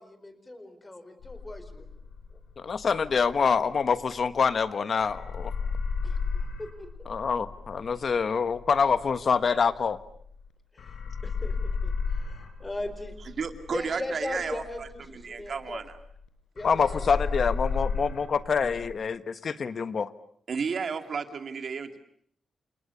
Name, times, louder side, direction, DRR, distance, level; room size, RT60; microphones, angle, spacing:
voice 1, 0.0-1.9 6.0-6.9 10.7-11.0 11.2-11.5 11.8-13.1 13.7-15.8 16.5-17.3, left 1 dB, 15° left, 10 dB, 4.3 m, -38 dB
sound 1, 1.2-4.7 5.0-10.5 10.8-16.3 16.6-18.9, left 4 dB, 80° left, 4.5 m, -34 dB
voice 2, 2.6-5.5 7.1-10.0 16.6-20.1, left 5 dB, 50° left, 12 dB, 1.3 m, -26 dB
voice 3, 13.3-15.8 20.5-22.0, right 5 dB, 50° right, 7 dB, 2.3 m, -33 dB
30.0 x 28.0 x 7.0 m, 0.64 s
wide cardioid pair, 140°, 0 cm